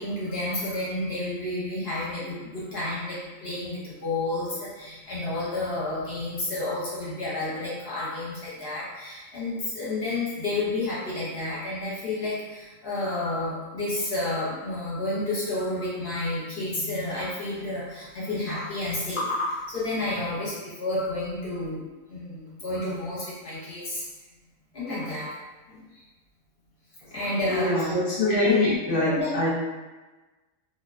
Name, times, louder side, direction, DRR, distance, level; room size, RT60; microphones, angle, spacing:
voice 1, 0.0-21.8 22.1-24.0 24.7-25.3 25.7-26.0 27.1-27.9 28.3-28.8 29.1-29.5, left 2 dB, 55° left, -8 dB, 0.9 m, -30 dB
voice 2, 27.0-29.5, left 2 dB, 35° left, -8 dB, 0.6 m, -25 dB
2.4 x 2.2 x 2.3 m, 1.2 s
omnidirectional pair, 1.4 m